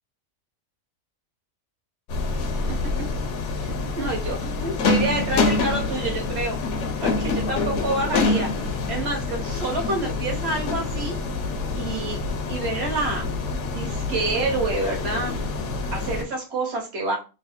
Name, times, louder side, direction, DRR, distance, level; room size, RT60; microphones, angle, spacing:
sound 1, 2.1-16.2, left 3 dB, 70° left, 0.9 m, -26 dB
voice 1, 3.5-6.6 7.0-11.2 11.8-12.2 12.5-13.2 13.6-15.3 15.9-17.2, right 2 dB, 50° right, 0 dB, 1.3 m, -28 dB
3.1 x 2.0 x 4.1 m, 0.32 s
omnidirectional pair, 1.4 m